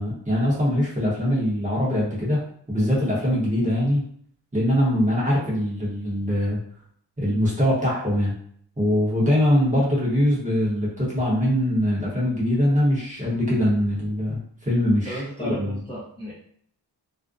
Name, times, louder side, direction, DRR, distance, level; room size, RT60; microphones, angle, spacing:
voice 1, 0.0-2.4 2.7-4.0 4.5-6.6 7.2-8.3 8.8-15.8, equal, 15° right, -6 dB, 0.8 m, -22 dB
voice 2, 15.0-16.3, equal, 10° left, -9 dB, 0.6 m, -33 dB
2.5 x 2.1 x 2.4 m, 0.63 s
wide cardioid pair, 130°, 43 cm